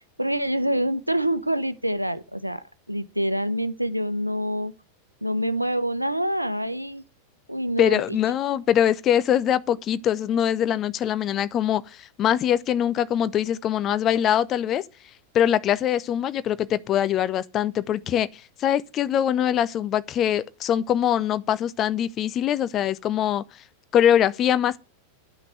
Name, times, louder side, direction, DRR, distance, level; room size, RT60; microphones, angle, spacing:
voice 1, 0.2-4.7 5.2-7.0 7.5-8.2, equal, 90° right, 0.8 m, -26 dB
voice 2, 7.8-14.8 15.3-23.4 23.9-24.8, left 10 dB, 30° left, 0.8 m, -23 dB
11.0 x 6.1 x 8.0 m
figure-of-eight pair, 90°, 0 cm